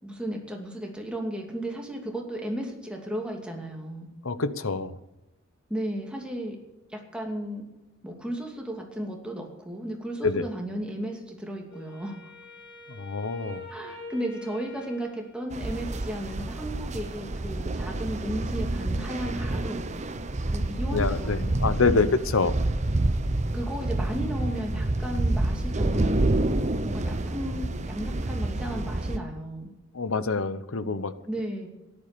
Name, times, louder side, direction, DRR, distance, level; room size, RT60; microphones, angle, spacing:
voice 1, 0.0-4.1 5.7-6.6 6.9-7.6 8.0-12.2 13.7-19.9 20.5-22.1 23.5-26.2 26.9-29.7 31.3-31.7, right 1 dB, 5° right, 0 dB, 2.6 m, -34 dB
voice 2, 4.2-5.0 10.2-10.4 13.0-13.6 20.9-22.5 29.9-31.1, left 4 dB, 80° left, 13 dB, 0.9 m, -26 dB
Wind instrument woodwind instrument, 11.7-16.1, left 1 dB, 55° left, 6.6 m, -45 dB
sound 1, 15.5-29.2, right 2 dB, 35° right, 0.8 m, -28 dB
13.5 x 11.0 x 6.8 m, 0.99 s
head